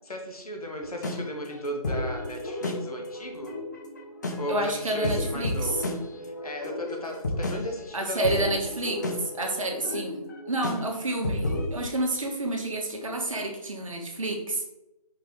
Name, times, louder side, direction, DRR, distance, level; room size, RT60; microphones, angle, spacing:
voice 1, 0.1-3.5 4.4-5.9 6.2-8.5, equal, 65° left, 2 dB, 1.9 m, -36 dB
sound 1, 0.8-11.8, left 1 dB, 30° left, 0.7 m, -33 dB
voice 2, 4.5-5.8 7.9-10.2 10.5-14.6, right 1 dB, 55° right, 1 dB, 1.5 m, -29 dB
5.6 x 5.1 x 3.7 m, 0.96 s
figure-of-eight pair, 160°, 20 cm